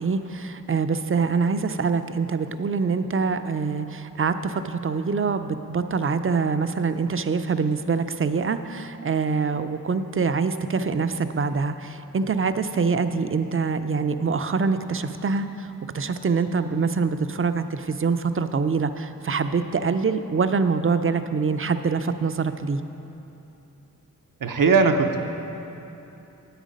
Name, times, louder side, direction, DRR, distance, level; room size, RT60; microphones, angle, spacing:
voice 1, 0.0-15.7 15.9-22.8, right 5 dB, 40° right, 10 dB, 0.4 m, -25 dB
voice 2, 24.4-25.2, right 4 dB, 80° right, 5 dB, 0.6 m, -19 dB
9.1 x 8.2 x 5.2 m, 3.0 s
wide cardioid pair, 60°, 32 cm